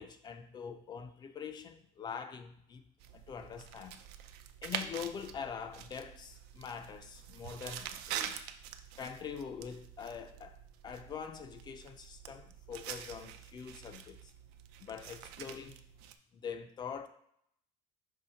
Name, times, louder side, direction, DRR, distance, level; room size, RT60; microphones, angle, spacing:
voice 1, 0.0-2.8 3.1-4.0 4.6-8.4 9.0-10.6 10.8-14.3 14.8-15.8 16.3-17.1, left 7 dB, 25° left, 0.4 m, -44 dB
sound 1, 3.0-16.1, right 10 dB, 80° right, 0.5 m, -46 dB
5.6 x 3.1 x 5.5 m
cardioid pair, 170°, 16 cm